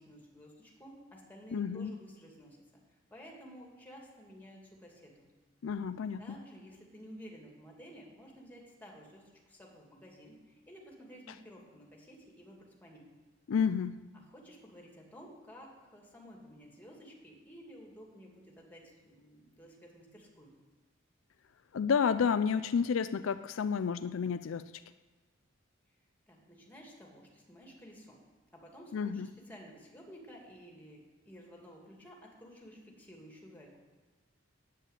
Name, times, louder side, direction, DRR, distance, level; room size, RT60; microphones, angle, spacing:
voice 1, 0.0-2.6 2.9-5.3 6.2-13.1 14.1-20.5 26.3-28.2 28.5-33.8, equal, 10° left, -1 dB, 2.5 m, -53 dB
voice 2, 1.5-1.9 5.6-6.4 13.5-14.1 21.7-24.7 28.9-29.3, left 6 dB, 75° left, 12 dB, 0.4 m, -31 dB
9.9 x 9.1 x 8.2 m, 1.3 s
head